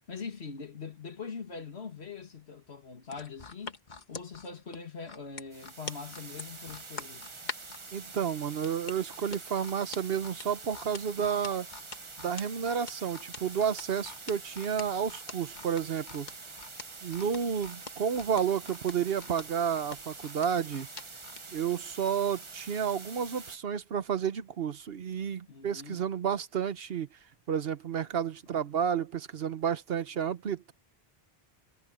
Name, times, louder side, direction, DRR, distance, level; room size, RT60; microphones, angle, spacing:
voice 1, 0.0-3.8 4.1-7.3 25.5-26.0, left 5 dB, 80° left, 2.3 m, -42 dB
sound 1, 3.1-7.8 8.6-21.4 21.9-22.0, left 4 dB, 45° left, 1.3 m, -44 dB
sound 2, 5.5-23.6, right 3 dB, 30° right, 1.0 m, -46 dB
voice 2, 7.9-11.7 12.2-16.3 17.0-20.9 21.5-27.2 27.5-30.7, right 7 dB, 65° right, 1.1 m, -31 dB
omnidirectional pair, 1.1 m